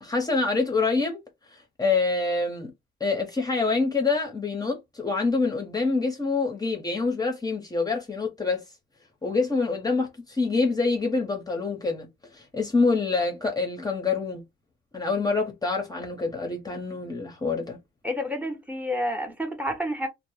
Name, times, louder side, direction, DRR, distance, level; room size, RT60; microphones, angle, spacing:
voice 1, 0.0-1.2 1.5-2.7 3.0-8.6 9.2-14.4 14.9-17.8, left 3 dB, 20° left, 0.7 m, -26 dB
voice 2, 18.0-20.1, equal, 5° right, 0.8 m, -29 dB
2.0 x 2.0 x 3.0 m
cardioid pair, 90°, 20 cm